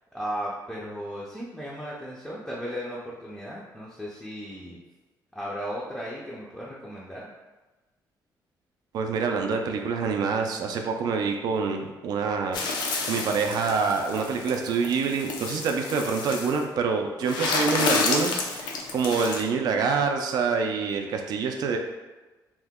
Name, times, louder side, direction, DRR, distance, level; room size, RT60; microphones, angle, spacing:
voice 1, 0.1-4.8 5.3-7.3, equal, 5° left, -6 dB, 0.4 m, -36 dB
voice 2, 8.9-12.8 13.0-21.8, right 5 dB, 60° right, 4 dB, 0.3 m, -26 dB
sound 1, 12.5-16.6 17.2-19.4, left 3 dB, 75° left, 0.4 m, -30 dB
2.8 x 2.1 x 3.5 m, 1.2 s
cardioid pair, 135°, 8 cm